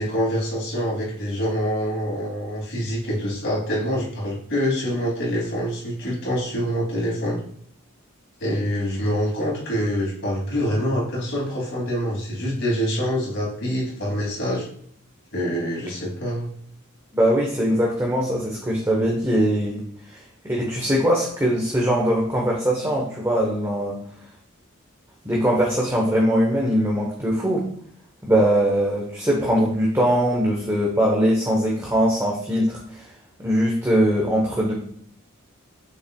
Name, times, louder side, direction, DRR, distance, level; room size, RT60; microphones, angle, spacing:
voice 1, 0.0-7.4 8.4-14.7 15.3-16.5, equal, 60° left, -3 dB, 2.8 m, -25 dB
voice 2, 17.1-19.8 20.1-20.2 20.4-24.0 25.2-27.6 28.2-33.1 33.4-34.7, equal, 15° right, -2 dB, 1.1 m, -21 dB
7.2 x 5.9 x 2.3 m, 0.63 s
head